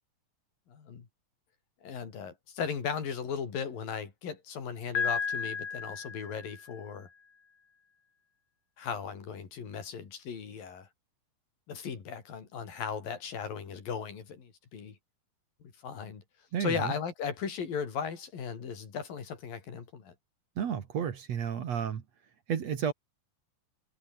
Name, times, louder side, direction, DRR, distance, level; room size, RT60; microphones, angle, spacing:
voice 1, 0.7-1.1 1.8-7.1 8.8-10.9 11.7-15.0 15.8-16.2 16.6-20.1, left 6 dB, 75° left, 5.4 m, -37 dB
Piano, 4.9-6.9, left 6 dB, 45° left, 4.0 m, -34 dB
voice 2, 16.5-16.9 20.6-22.0 22.5-22.9, right 8 dB, 55° right, 2.7 m, -32 dB
omnidirectional pair, 4.1 m